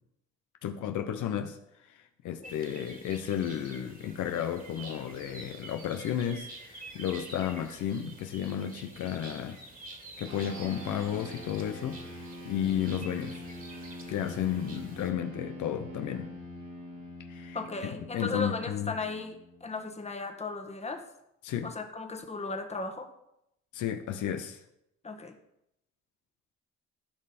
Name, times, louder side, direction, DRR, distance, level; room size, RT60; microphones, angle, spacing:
voice 1, 0.6-1.6 2.2-9.6 10.2-13.4 14.1-16.3 17.3-17.6 18.1-18.9 21.4-21.7 23.7-24.6, left 9 dB, 80° left, 7 dB, 0.8 m, -33 dB
sound 1, 2.4-15.1, right 2 dB, 30° right, 2.0 m, -48 dB
sound 2, 10.2-20.0, left 1 dB, 85° right, 3.2 m, -44 dB
voice 2, 17.5-21.0 21.6-23.1 25.0-25.4, left 3 dB, 20° left, 5 dB, 1.3 m, -36 dB
13.0 x 5.4 x 4.3 m, 0.83 s
cardioid pair, 90°, 30 cm